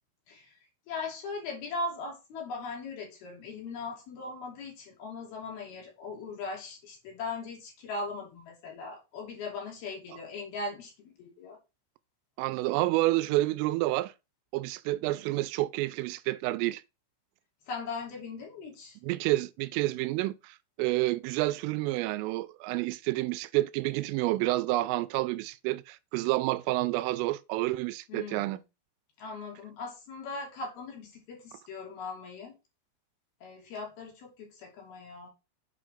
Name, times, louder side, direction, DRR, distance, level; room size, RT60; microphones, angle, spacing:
voice 1, 0.9-11.6 17.7-19.0 28.1-28.6 29.2-32.5 33.4-35.3, left 3 dB, 55° left, 4.4 m, -39 dB
voice 2, 12.4-14.1 14.5-16.8 19.0-28.6, right 18 dB, 85° right, 3.2 m, -29 dB
8.4 x 5.6 x 5.0 m
omnidirectional pair, 5.8 m